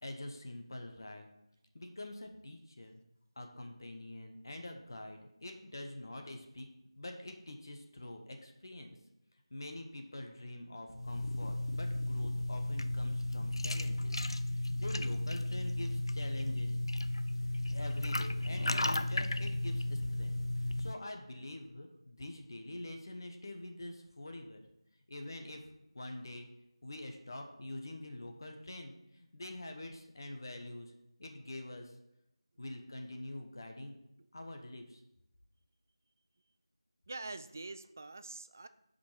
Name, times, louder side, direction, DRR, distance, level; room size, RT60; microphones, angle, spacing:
voice 1, 0.0-1.3 1.7-3.0 3.4-6.7 6.9-9.0 9.5-14.2 14.5-16.8 17.6-20.4 20.6-24.6 25.1-25.6 25.9-26.5 26.8-30.9 31.2-31.9 32.6-34.0 34.3-35.0, left 1 dB, 45° left, 4 dB, 0.9 m, -45 dB
sound 1, 10.9-20.9, left 1 dB, 60° left, 0.4 m, -34 dB
voice 2, 37.1-38.7, right 3 dB, 30° right, 12 dB, 0.3 m, -45 dB
6.9 x 5.2 x 4.8 m, 0.84 s
figure-of-eight pair, 170°, 3 cm